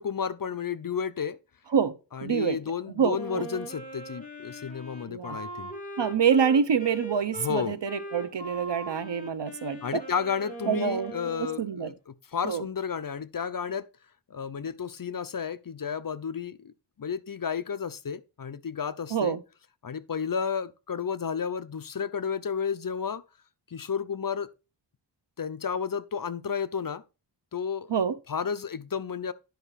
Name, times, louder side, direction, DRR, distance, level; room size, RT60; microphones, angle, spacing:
voice 1, 0.0-1.4 2.1-5.7 7.4-7.8 9.8-13.9 14.3-16.7 17.0-19.4 19.8-23.2 23.7-24.5 25.4-27.0 27.5-27.9 28.3-29.3, left 6 dB, 50° left, 0.7 m, -32 dB
voice 2, 2.2-2.6 3.0-3.5 5.1-5.4 6.0-10.0 10.7-11.1 11.6-11.9 12.4-12.6 19.1-19.4 27.9-28.1, right 7 dB, 70° right, 0.9 m, -26 dB
Wind instrument woodwind instrument, 3.1-11.6, right 1 dB, 20° left, 3.1 m, -40 dB
10.5 x 5.5 x 4.0 m
wide cardioid pair, 80°, 45 cm